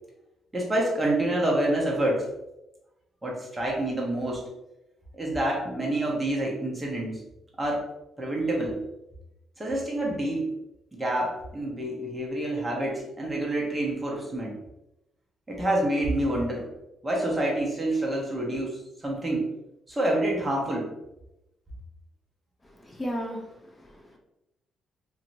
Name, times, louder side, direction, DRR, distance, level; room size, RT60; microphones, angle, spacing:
voice 1, 0.5-2.3 3.2-4.5 5.1-7.2 7.6-7.8 8.2-8.8 9.6-10.5 10.9-14.6 15.5-16.7 17.0-19.5 19.9-20.9, right 1 dB, 20° right, -3 dB, 1.0 m, -27 dB
voice 2, 22.6-24.2, equal, 15° left, 0 dB, 0.7 m, -36 dB
2.8 x 2.8 x 2.6 m, 0.91 s
cardioid pair, 90°, 0 cm